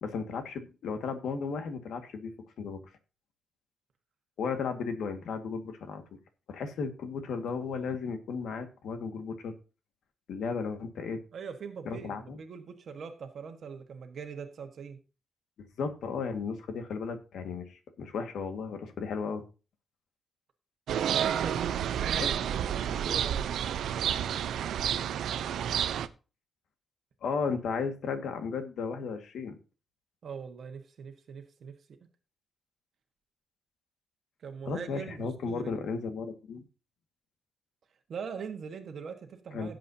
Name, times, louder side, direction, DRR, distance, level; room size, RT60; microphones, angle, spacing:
voice 1, 0.0-2.8 4.4-6.0 6.5-9.5 10.3-11.2 11.9-12.4 15.8-19.4 27.2-29.6 34.7-36.7 39.5-39.7, left 5 dB, 75° left, 7 dB, 1.8 m, -35 dB
voice 2, 11.3-15.0 21.1-23.8 30.2-31.7 34.4-35.8 38.1-39.8, right 6 dB, 50° right, 5 dB, 1.4 m, -42 dB
sound 1, 20.9-26.1, right 9 dB, 90° right, 0.7 m, -30 dB
17.0 x 7.6 x 2.8 m, 0.33 s
wide cardioid pair, 175°, 0 cm